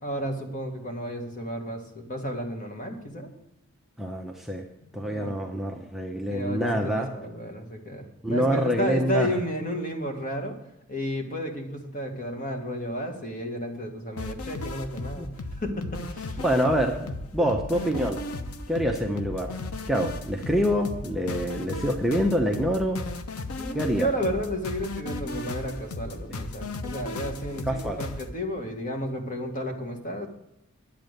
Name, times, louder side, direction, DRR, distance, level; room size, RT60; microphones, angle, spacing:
voice 1, 0.0-3.3 4.9-5.4 6.3-10.6 10.9-15.3 15.6-16.4 17.4-17.6 23.6-30.3, equal, 40° left, 4 dB, 1.7 m, -32 dB
voice 2, 4.0-4.6 4.9-7.1 8.2-9.4 15.2-15.3 16.4-18.2 18.7-19.5 19.9-23.0 23.7-24.1 27.7-28.0, equal, ahead, 1 dB, 0.7 m, -26 dB
sound 1, 14.2-28.3, left 2 dB, 85° left, 0.9 m, -35 dB
10.5 x 8.1 x 6.6 m, 0.87 s
head